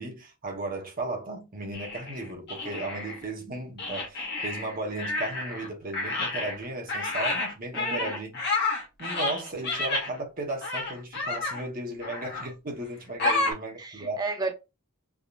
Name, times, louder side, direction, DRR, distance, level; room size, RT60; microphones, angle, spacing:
voice 1, 0.0-8.3 9.0-14.2, right 2 dB, 40° right, 1.0 m, -35 dB
sound 1, 1.7-3.2 3.8-5.7 5.9-10.1 10.6-11.6 12.0-12.5 13.2-13.5, left 3 dB, 50° left, 1.2 m, -30 dB
voice 2, 7.7-8.2 13.2-14.5, right 3 dB, 20° right, 0.5 m, -33 dB
3.5 x 2.8 x 2.5 m
head